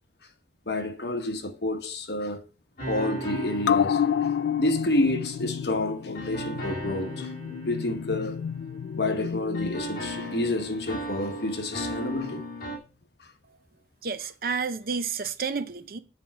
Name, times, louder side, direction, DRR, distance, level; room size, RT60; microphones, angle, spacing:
voice 1, 0.7-2.4 2.8-4.0 4.6-7.3 7.7-8.4 9.0-12.5, left 2 dB, 70° left, 1.3 m, -29 dB
sound 1, 2.8-5.5 6.1-9.2 9.5-12.8, right 1 dB, 50° left, 2.6 m, -37 dB
sound 2, 3.6-10.5 10.9-11.0, left 8 dB, 85° left, 0.3 m, -30 dB
voice 2, 14.0-16.0, right 5 dB, 55° right, 0.7 m, -30 dB
7.2 x 4.5 x 5.8 m
head